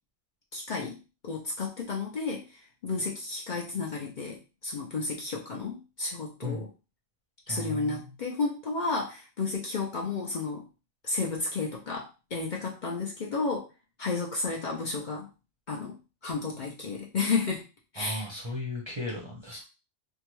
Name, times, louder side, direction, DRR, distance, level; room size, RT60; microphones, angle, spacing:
voice 1, 0.5-1.0 1.2-6.7 7.5-10.7 11.0-13.7 14.0-15.3 15.7-16.0 16.2-17.7 17.9-18.3, left 4 dB, 50° left, -2 dB, 0.6 m, -32 dB
voice 2, 7.5-8.0 18.0-19.6, left 2 dB, 30° right, -2 dB, 0.6 m, -36 dB
2.7 x 2.2 x 3.0 m, 0.30 s
omnidirectional pair, 1.1 m